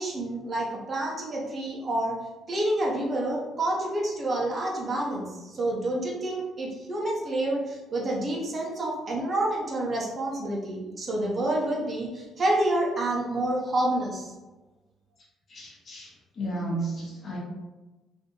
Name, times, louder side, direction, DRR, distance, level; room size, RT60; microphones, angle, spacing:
voice 1, 0.0-2.2 2.5-14.3, right 1 dB, 35° right, -3 dB, 0.8 m, -28 dB
voice 2, 15.5-16.1 16.4-17.4, right 1 dB, 40° left, -4 dB, 1.1 m, -33 dB
2.7 x 2.6 x 3.7 m, 1.1 s
cardioid pair, 135°, 0 cm